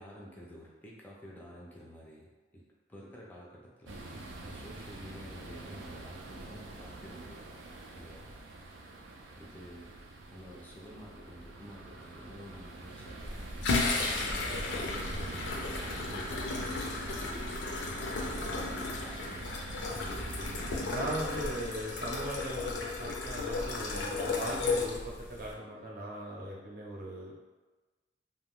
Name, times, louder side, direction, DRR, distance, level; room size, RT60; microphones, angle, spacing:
voice 1, 0.0-7.6 7.9-8.3 9.4-10.0 10.3-17.2 18.2-19.7, equal, 10° left, -4 dB, 0.4 m, -50 dB
sound 1, 3.9-20.9, right 2 dB, 90° right, 0.4 m, -45 dB
sound 2, 13.2-25.5, left 3 dB, 80° left, 0.5 m, -34 dB
voice 2, 20.8-27.3, right 1 dB, 50° right, -3 dB, 0.7 m, -39 dB
2.5 x 2.3 x 3.5 m, 1.2 s
head